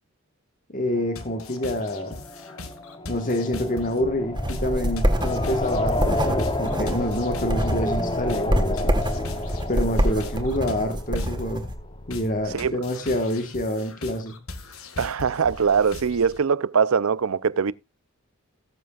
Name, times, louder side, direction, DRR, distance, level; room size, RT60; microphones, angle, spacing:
voice 1, 0.7-2.2 3.1-9.0 9.7-11.6 12.1-14.4, left 1 dB, 40° left, 1.5 m, -27 dB
sound 1, 1.0-11.8, left 2 dB, 20° left, 0.8 m, -31 dB
sound 2, 1.2-16.4, left 2 dB, 85° left, 1.9 m, -41 dB
sound 3, 4.3-11.7, equal, 20° right, 1.4 m, -26 dB
voice 2, 15.0-17.7, right 6 dB, 80° right, 0.6 m, -22 dB
18.5 x 7.8 x 2.4 m
head